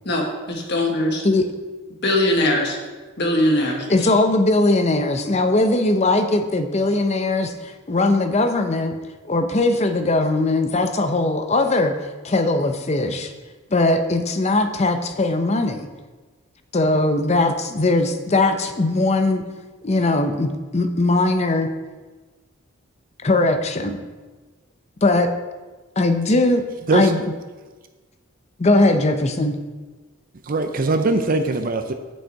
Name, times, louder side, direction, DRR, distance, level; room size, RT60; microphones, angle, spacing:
voice 1, 0.0-1.2 2.0-2.8 3.2-3.8, left 1 dB, 50° left, 0 dB, 1.6 m, -21 dB
voice 2, 3.9-9.0 9.2-12.0 12.2-13.3 13.7-15.9 16.7-19.4 19.8-21.7 23.2-24.0 25.0-25.3 26.0-26.6 26.9-27.2 28.6-29.6, left 2 dB, 30° left, 7 dB, 0.6 m, -20 dB
voice 3, 30.5-31.9, right 3 dB, 40° right, 8 dB, 0.5 m, -21 dB
7.9 x 6.4 x 4.6 m, 1.3 s
head